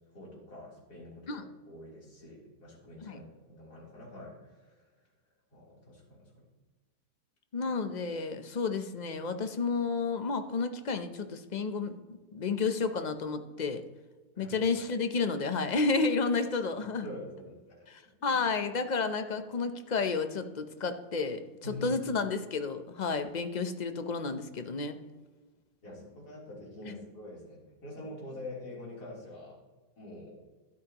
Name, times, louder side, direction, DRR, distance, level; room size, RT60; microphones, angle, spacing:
voice 1, 0.1-4.9 5.5-6.3 14.3-14.6 17.0-18.4 21.6-22.0 25.8-29.6 30.0-30.4, left 2 dB, 70° left, -5 dB, 3.9 m, -46 dB
voice 2, 7.5-11.9 12.3-13.8 14.4-17.0 17.9-25.0 26.8-26.9, left 4 dB, 45° left, 8 dB, 0.5 m, -31 dB
13.0 x 11.0 x 3.0 m, 1.3 s
omnidirectional pair, 1.7 m